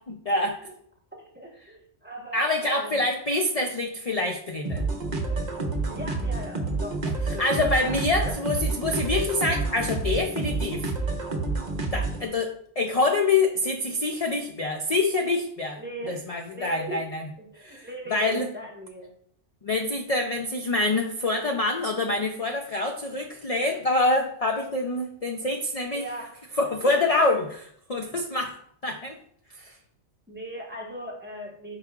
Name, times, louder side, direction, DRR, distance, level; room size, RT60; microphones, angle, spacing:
voice 1, 0.1-0.7 2.3-4.8 7.0-7.1 7.4-10.9 11.9-15.8 16.1-17.3 17.6-18.5 19.6-26.0 26.6-27.6 27.9-28.6 28.8-29.2 29.5-29.8, left 2 dB, 40° left, 3 dB, 0.5 m, -26 dB
voice 2, 1.1-3.1 5.8-7.5 7.8-8.4 15.8-17.0 17.4-19.1 25.9-26.9 30.3-31.8, right 1 dB, 10° right, -2 dB, 1.0 m, -39 dB
sound 1, 4.6-12.3, right 3 dB, 40° right, 0.9 m, -29 dB
9.2 x 4.9 x 2.4 m, 0.66 s
omnidirectional pair, 1.2 m